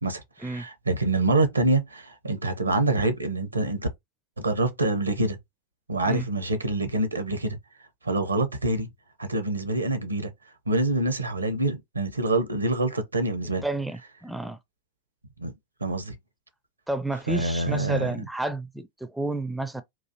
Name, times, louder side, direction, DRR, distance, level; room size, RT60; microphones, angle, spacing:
voice 1, 0.0-3.9 4.4-5.4 5.9-7.6 8.0-8.9 9.2-10.3 10.7-13.6 15.4-15.5 15.8-16.1 17.3-18.1, right 2 dB, 80° right, 0.7 m, -26 dB
voice 2, 13.6-14.6 16.9-19.8, right 1 dB, 5° right, 0.4 m, -31 dB
3.9 x 2.5 x 2.7 m
figure-of-eight pair, 90°, 0 cm